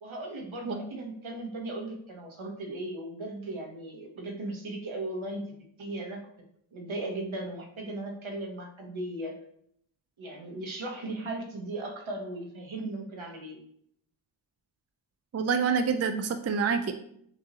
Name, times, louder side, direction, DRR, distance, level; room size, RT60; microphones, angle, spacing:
voice 1, 0.0-5.4 5.8-6.2 6.7-9.4 10.2-13.6, right 2 dB, 75° right, 1 dB, 1.1 m, -37 dB
voice 2, 15.3-16.9, right 5 dB, 35° right, 8 dB, 0.4 m, -27 dB
6.0 x 2.7 x 2.8 m, 0.68 s
cardioid pair, 50°, 49 cm